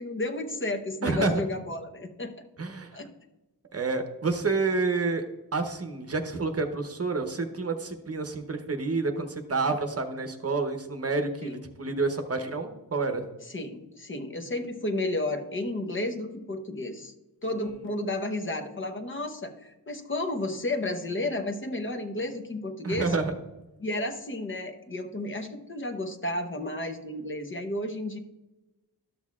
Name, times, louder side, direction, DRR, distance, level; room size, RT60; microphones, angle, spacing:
voice 1, 0.0-2.3 2.9-3.1 11.4-11.6 13.5-17.1 17.4-23.1 23.8-28.2, left 2 dB, 30° left, 6 dB, 0.9 m, -32 dB
voice 2, 1.0-1.4 2.6-3.0 3.7-5.2 5.5-13.3 22.8-23.3, right 3 dB, 35° right, 6 dB, 0.9 m, -29 dB
13.0 x 6.4 x 2.4 m, 1.0 s
wide cardioid pair, 100°, 40 cm